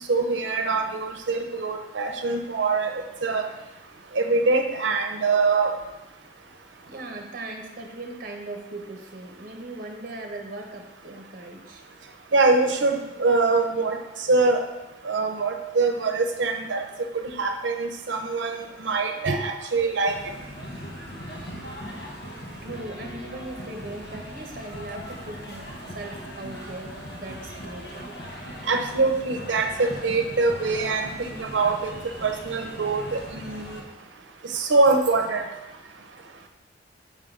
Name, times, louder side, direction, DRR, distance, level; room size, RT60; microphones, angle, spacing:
voice 1, 0.1-3.5 4.1-5.7 12.3-14.0 14.3-14.6 15.0-16.9 17.1-20.3 28.7-31.9 32.2-33.8 34.4-35.5, right 3 dB, 90° right, 5 dB, 0.7 m, -24 dB
voice 2, 6.9-11.8 21.8-22.0 22.4-28.2, right 2 dB, 50° right, 2 dB, 1.0 m, -39 dB
sound 1, 20.1-33.8, equal, 60° left, 1.1 m, -39 dB
5.2 x 3.7 x 5.4 m, 1.0 s
head